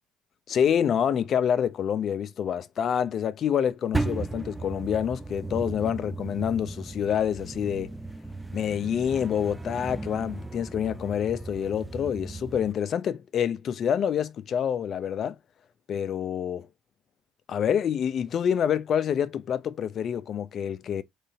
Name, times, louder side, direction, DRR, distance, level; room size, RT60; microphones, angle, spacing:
voice 1, 0.5-7.9 8.5-15.4 15.9-16.7 17.5-21.0, left 8 dB, 50° left, 0.6 m, -27 dB
sound 1, 3.9-12.7, right 2 dB, 10° right, 0.6 m, -36 dB
3.8 x 3.3 x 4.0 m
supercardioid pair, 75°, 0 cm